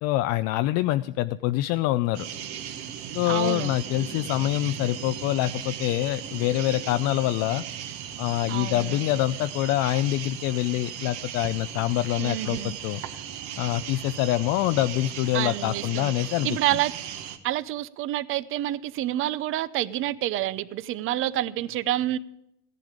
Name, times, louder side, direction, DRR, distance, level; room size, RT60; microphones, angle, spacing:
voice 1, 0.0-2.3 3.1-7.6 8.2-13.0 13.6-16.6, left 15 dB, 55° left, 0.4 m, -25 dB
sound 1, 2.1-17.4, right 9 dB, 60° right, 1.3 m, -37 dB
voice 2, 3.2-3.7 8.5-9.0 12.2-12.8 15.3-16.9 17.4-22.2, right 14 dB, 40° right, 0.6 m, -28 dB
15.0 x 10.5 x 5.0 m
supercardioid pair, 130°, 31 cm